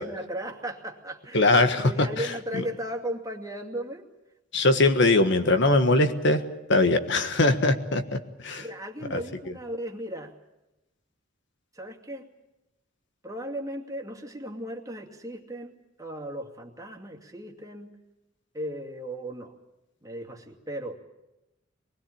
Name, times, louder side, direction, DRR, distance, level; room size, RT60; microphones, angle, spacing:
voice 1, 0.0-4.1 8.6-10.3 11.7-12.3 13.2-15.7 16.0-17.9 18.5-19.5 20.0-21.0, right 1 dB, 20° right, 2 dB, 2.4 m, -36 dB
voice 2, 1.3-2.6 4.5-6.4 6.7-8.6 9.1-9.2, left 2 dB, 65° left, 8 dB, 1.5 m, -22 dB
23.5 x 20.5 x 8.7 m, 0.96 s
head